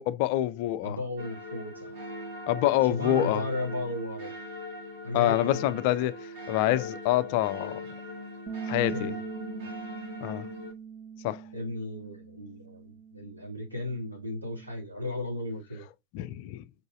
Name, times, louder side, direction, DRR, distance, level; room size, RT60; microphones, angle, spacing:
voice 1, 0.0-1.0 2.5-3.4 5.1-7.8 8.7-9.1 10.2-10.5 11.2-11.4 16.1-16.6, left 14 dB, 45° left, 0.3 m, -26 dB
voice 2, 0.8-1.9 2.8-4.3 5.0-5.8 8.8-9.2 11.5-15.9, left 1 dB, 85° right, 2.1 m, -35 dB
sound 1, 1.2-10.7, left 2 dB, 55° right, 1.9 m, -40 dB
Bass guitar, 8.5-14.7, right 7 dB, 30° right, 0.7 m, -42 dB
5.4 x 3.9 x 2.4 m
figure-of-eight pair, 90°, 0 cm